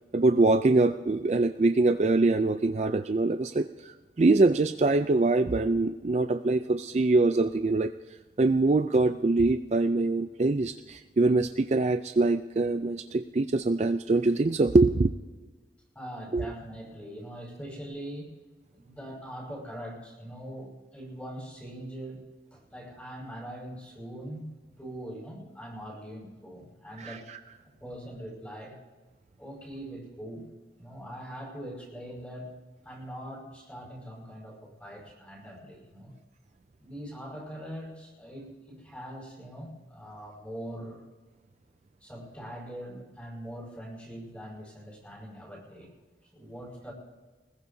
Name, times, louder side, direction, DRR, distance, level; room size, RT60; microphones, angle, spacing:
voice 1, 0.1-7.9 8.4-15.1 16.3-16.4 27.0-27.4, right 3 dB, 40° right, 8 dB, 0.4 m, -24 dB
voice 2, 15.9-18.3 18.7-22.2 22.5-27.2 27.8-28.8 29.4-30.5 30.8-32.5 32.8-36.1 36.8-41.1 42.0-46.0 46.2-46.9, equal, 10° left, -3 dB, 5.3 m, -42 dB
24.0 x 20.5 x 2.7 m, 1.3 s
head